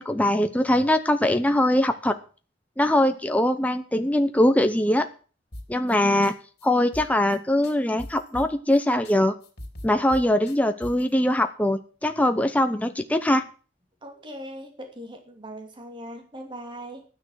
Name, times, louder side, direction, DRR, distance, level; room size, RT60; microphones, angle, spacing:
voice 1, 0.0-2.2 2.8-5.1 5.7-6.3 6.6-9.3 9.8-13.4, left 1 dB, 10° left, 7 dB, 0.8 m, -22 dB
sound 1, 5.5-6.0 6.2-6.3 6.6-6.7 6.9-8.8 9.0-9.2 9.4-11.1, left 1 dB, 60° left, 3.6 m, -40 dB
voice 2, 14.0-17.0, equal, 25° right, 4 dB, 2.5 m, -40 dB
12.5 x 9.7 x 6.3 m, 0.38 s
head